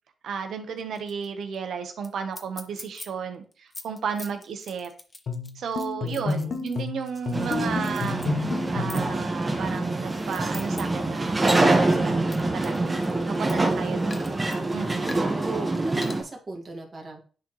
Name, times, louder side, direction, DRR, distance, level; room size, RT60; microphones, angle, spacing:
voice 1, 0.2-3.4 3.8-4.9 5.5-8.2 8.7-12.9 13.4-14.2 14.7-15.2, right 6 dB, 75° right, 1.2 m, -33 dB
sound 1, 0.8-1.3 1.5-1.6 2.0-2.1 2.3-3.1 3.5-7.6 7.8-8.3 8.9-9.1 9.8-10.8 11.2-13.7 14.1-14.6 15.1-15.4 16.0-16.2, left 2 dB, 30° left, 1.1 m, -43 dB
sound 2, 5.3-9.1, left 4 dB, 60° left, 1.1 m, -31 dB
voice 2, 6.0-6.6 13.4-14.5 15.3-17.2, right 2 dB, 40° right, 2.0 m, -37 dB
sound 3, 7.3-16.2, right 2 dB, 25° right, 1.5 m, -25 dB
10.0 x 4.2 x 3.2 m
cardioid pair, 70°, 0 cm